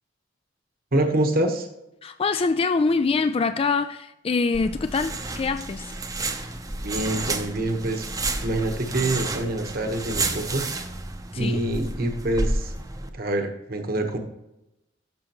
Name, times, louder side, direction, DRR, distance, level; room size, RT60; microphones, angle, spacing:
voice 1, 0.9-1.7 6.8-8.1 8.4-10.6 11.3-12.7 13.1-14.2, right 1 dB, 55° right, 1.2 m, -26 dB
voice 2, 2.0-5.9 11.3-11.6, left 4 dB, 30° left, 0.3 m, -24 dB
sound 1, 4.5-13.1, right 2 dB, 20° right, 0.8 m, -31 dB
13.5 x 6.4 x 3.0 m
head